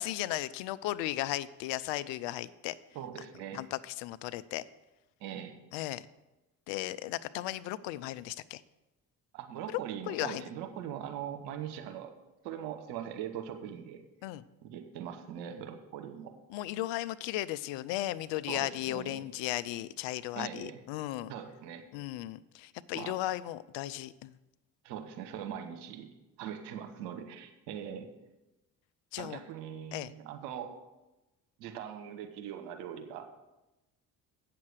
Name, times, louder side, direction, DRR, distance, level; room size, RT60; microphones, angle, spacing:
voice 1, 0.0-2.8 3.5-4.6 5.7-6.1 6.7-8.6 9.7-9.8 10.1-10.4 14.2-14.4 16.5-21.3 21.9-24.3 29.1-29.4 29.9-30.1, left 15 dB, 65° left, 16 dB, 0.6 m, -35 dB
voice 2, 2.9-3.6 5.2-5.6 9.3-12.1 12.4-14.0 14.6-16.3 18.5-19.2 20.3-20.8 21.3-21.8 22.9-23.1 24.8-28.1 29.2-30.7 31.6-33.3, right 9 dB, 75° right, 6 dB, 1.1 m, -41 dB
8.5 x 6.8 x 6.2 m, 1.0 s
hypercardioid pair, 50°, 48 cm